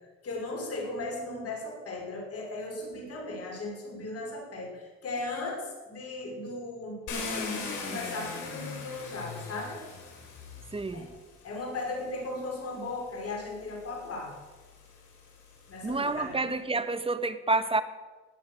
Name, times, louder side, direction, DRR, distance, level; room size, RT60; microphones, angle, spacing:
voice 1, 0.2-9.8 10.9-11.0 11.4-14.3 15.7-16.4, left 2 dB, 50° left, -1 dB, 5.4 m, -37 dB
Car, 7.1-11.2 12.1-12.2 12.8-16.0, left 4 dB, 85° left, 4.9 m, -40 dB
voice 2, 10.7-11.0 15.8-17.8, right 3 dB, 20° right, 11 dB, 1.2 m, -28 dB
17.5 x 9.5 x 6.4 m, 1.3 s
cardioid pair, 90°, 30 cm